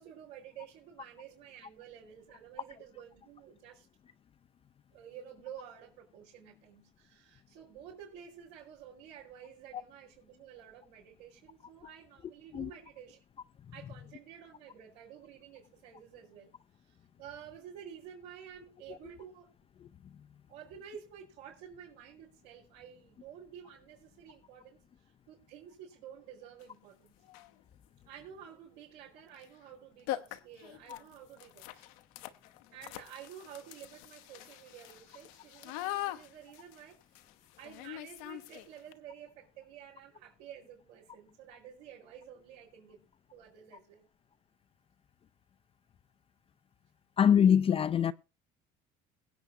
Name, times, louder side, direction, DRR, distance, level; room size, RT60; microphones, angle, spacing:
voice 1, 0.0-3.9 4.9-13.2 13.7-16.5 16.8-19.5 20.5-27.1 28.0-31.9 32.7-37.2 37.6-43.0 43.3-44.1, right 9 dB, 80° right, 4.9 m, -51 dB
sound 1, 26.6-26.7 27.2-27.6 29.3-29.5 29.7-29.8 30.1-38.9, left 15 dB, 90° left, 1.0 m, -43 dB
voice 2, 47.2-48.1, left 8 dB, 30° left, 0.5 m, -24 dB
22.5 x 8.1 x 2.8 m
supercardioid pair, 100°, 18 cm